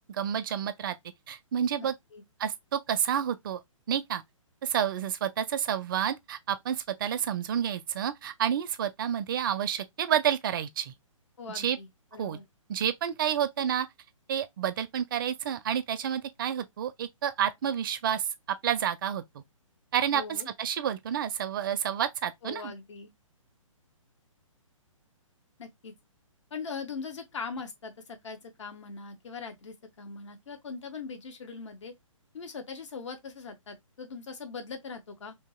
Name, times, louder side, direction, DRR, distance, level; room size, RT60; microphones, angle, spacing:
voice 1, 0.1-0.9 1.3-1.9 2.4-3.6 3.9-4.2 4.6-10.9 11.5-11.8 12.2-12.4 12.7-13.9 14.3-18.3 18.6-19.4 19.9-22.7, right 9 dB, 40° right, 0.4 m, -29 dB
voice 2, 1.8-2.2 11.4-12.5 20.1-20.5 22.4-23.1 25.6-25.9 26.5-31.9 32.3-35.3, left 5 dB, 60° left, 1.0 m, -41 dB
2.8 x 2.8 x 2.2 m
figure-of-eight pair, 135°, 17 cm